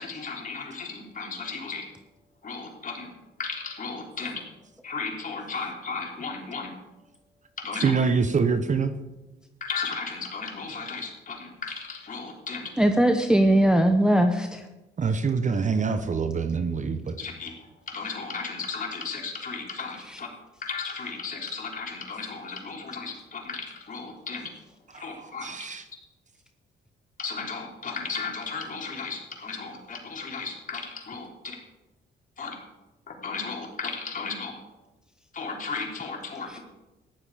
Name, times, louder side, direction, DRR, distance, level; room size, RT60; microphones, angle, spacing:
voice 1, 0.0-1.9 2.4-3.1 3.4-4.4 4.8-6.7 7.6-7.9 9.6-12.7 17.2-17.6 17.9-20.3 20.6-24.5 25.0-25.5 27.2-31.6 32.4-32.6 33.1-34.5 35.3-36.6, left 4 dB, 40° left, 0 dB, 3.6 m, -35 dB
voice 2, 7.8-8.9 15.0-17.2 24.9-25.8, right 5 dB, 40° right, 10 dB, 0.9 m, -25 dB
voice 3, 12.8-14.6 36.5-36.6, right 1 dB, 5° right, 5 dB, 0.9 m, -20 dB
14.5 x 10.5 x 4.9 m, 1.1 s
cardioid pair, 90°, 20 cm